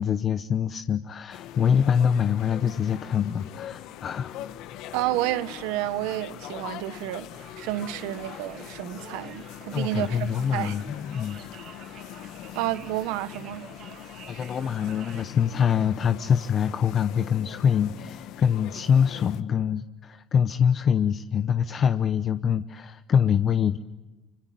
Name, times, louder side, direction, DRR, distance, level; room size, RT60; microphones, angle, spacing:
voice 1, 0.0-4.3 9.7-11.4 14.3-23.8, left 7 dB, 50° left, 0.9 m, -24 dB
sound 1, 1.3-19.4, left 12 dB, 75° left, 1.2 m, -42 dB
voice 2, 4.9-7.3 7.6-10.8 12.5-13.7, right 15 dB, 85° right, 1.1 m, -30 dB
Conversation, 7.3-15.2, right 8 dB, 65° right, 2.7 m, -49 dB
25.5 x 25.0 x 9.3 m
supercardioid pair, 70°, 0 cm